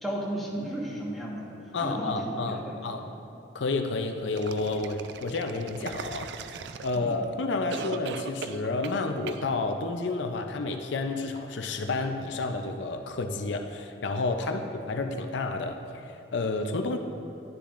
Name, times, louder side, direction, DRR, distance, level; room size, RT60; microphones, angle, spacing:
voice 1, 0.0-2.9 6.9-7.1 14.4-14.6, equal, ahead, -5 dB, 1.3 m, -34 dB
voice 2, 1.7-3.1 3.5-6.3 6.8-14.6 14.9-17.0, left 3 dB, 70° left, 5 dB, 0.5 m, -30 dB
sound 1, 4.4-7.2 7.7-9.0 9.3-9.4, right 5 dB, 65° right, 0.4 m, -39 dB
12.0 x 10.0 x 2.5 m, 2.7 s
head